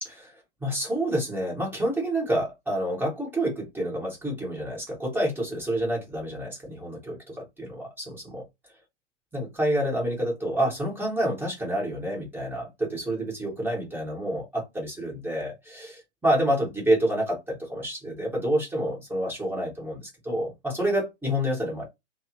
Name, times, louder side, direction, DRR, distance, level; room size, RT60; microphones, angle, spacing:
voice 1, 0.0-0.3 0.6-8.2 9.3-21.9, right 1 dB, 5° right, 1.4 m, -28 dB
3.0 x 2.0 x 3.0 m
figure-of-eight pair, 115°, 36 cm